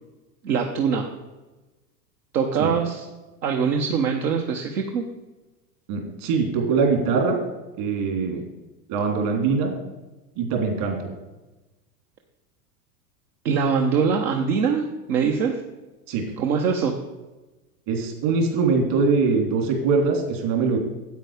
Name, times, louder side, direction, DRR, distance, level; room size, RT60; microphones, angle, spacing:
voice 1, 0.4-1.1 2.3-3.1 3.4-5.0 13.4-15.6 16.4-16.9, right 6 dB, 80° right, 2 dB, 1.2 m, -23 dB
voice 2, 5.9-7.4 7.8-8.4 8.9-9.7 10.4-11.1 16.1-16.2 17.9-20.8, right 4 dB, 60° right, 2 dB, 3.4 m, -22 dB
9.3 x 8.3 x 5.1 m, 1.1 s
hypercardioid pair, 100°, 48 cm